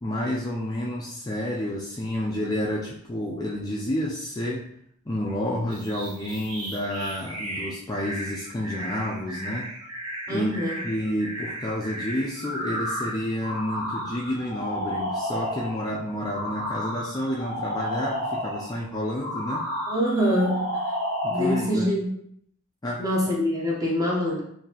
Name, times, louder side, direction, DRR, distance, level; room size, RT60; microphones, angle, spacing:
voice 1, 0.0-4.7 5.1-9.7 10.3-19.7 21.2-21.9 22.8-23.0, left 1 dB, 15° left, -3 dB, 0.3 m, -30 dB
sound 1, 5.7-15.9 16.3-18.8 19.2-21.7, equal, 85° right, 0.9 m, -32 dB
voice 2, 10.3-10.8 19.9-20.8 21.3-22.1 23.0-24.4, equal, 15° right, -3 dB, 0.8 m, -25 dB
3.9 x 2.6 x 2.8 m, 0.69 s
head